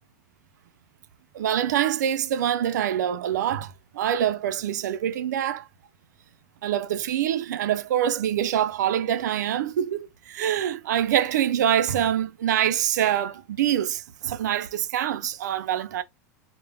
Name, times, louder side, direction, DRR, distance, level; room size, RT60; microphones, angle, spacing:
voice 1, 1.3-5.7 6.6-16.0, right 10 dB, 75° right, 0.4 m, -25 dB
2.0 x 2.0 x 3.3 m
hypercardioid pair, 95°, 9 cm